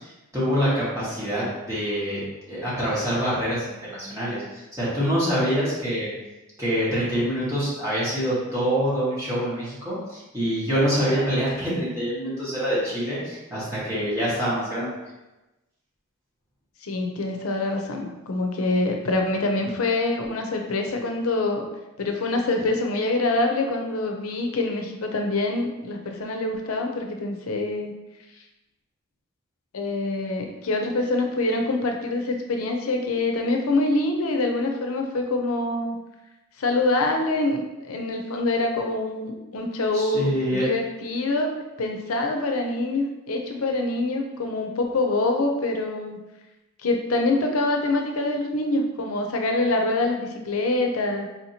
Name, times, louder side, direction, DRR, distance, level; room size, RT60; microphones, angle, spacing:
voice 1, 0.3-2.2 2.5-6.1 6.6-14.9 39.9-40.7, equal, 15° right, -9 dB, 1.4 m, -25 dB
voice 2, 16.8-21.6 22.0-27.9 29.7-36.0 36.6-41.5 41.8-46.2 46.8-51.3, left 2 dB, 85° left, 3 dB, 0.6 m, -25 dB
4.3 x 2.8 x 2.8 m, 1.0 s
head